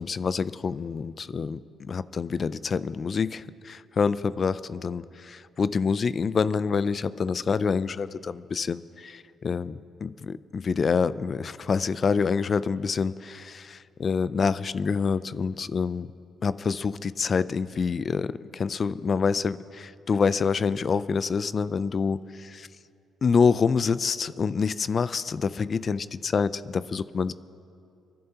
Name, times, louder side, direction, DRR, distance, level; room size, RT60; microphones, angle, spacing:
voice 1, 0.0-16.1 16.4-22.7 23.2-27.3, left 5 dB, 45° left, 16 dB, 0.4 m, -27 dB
30.0 x 11.5 x 2.9 m, 2.5 s
cardioid pair, 90°, 0 cm